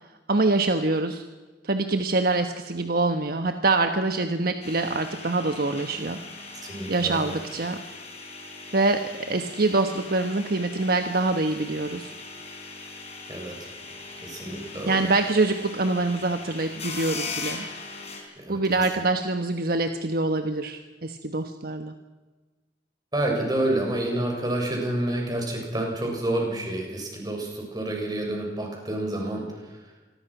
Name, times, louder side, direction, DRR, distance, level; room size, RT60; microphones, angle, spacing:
voice 1, 0.3-1.3 1.6-6.2 6.9-7.8 8.7-12.1 14.8-17.7 18.5-21.9, right 3 dB, 55° right, 7 dB, 1.3 m, -25 dB
sound 1, 4.6-18.2, left 4 dB, 35° left, 5.0 m, -39 dB
voice 2, 6.6-7.2 13.3-13.6 14.2-15.0 18.3-18.6 23.1-29.4, right 1 dB, 20° right, 0 dB, 7.3 m, -28 dB
27.0 x 21.5 x 6.1 m, 1.3 s
head